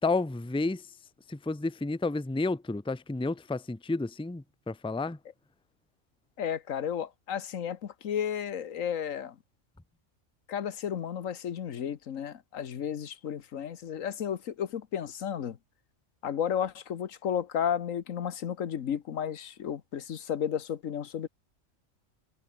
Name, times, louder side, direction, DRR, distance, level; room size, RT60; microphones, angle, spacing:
voice 1, 0.0-0.9 1.3-5.2, left 3 dB, 5° left, 0.7 m, -31 dB
voice 2, 6.4-9.3 10.5-15.6 16.2-21.3, left 8 dB, 80° left, 1.4 m, -33 dB
omnidirectional pair, 1.4 m